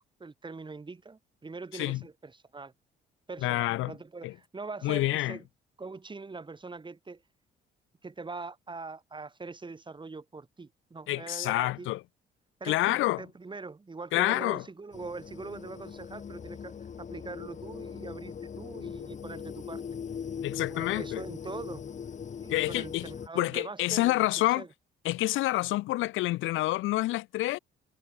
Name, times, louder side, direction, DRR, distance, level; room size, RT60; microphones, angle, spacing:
voice 1, 0.0-2.7 3.3-5.4 5.8-7.2 8.0-11.9 12.6-19.8 20.7-21.8 22.4-24.7, right 3 dB, 25° right, 2.1 m, -42 dB
voice 2, 3.4-3.9 4.2-4.3 4.8-5.4 11.1-12.0 12.6-13.2 14.1-14.6 20.4-21.2 22.5-24.6 25.0-27.6, left 17 dB, 80° left, 0.5 m, -28 dB
sound 1, 14.9-23.3, left 7 dB, 40° left, 0.9 m, -40 dB
cardioid pair, 90°, 20 cm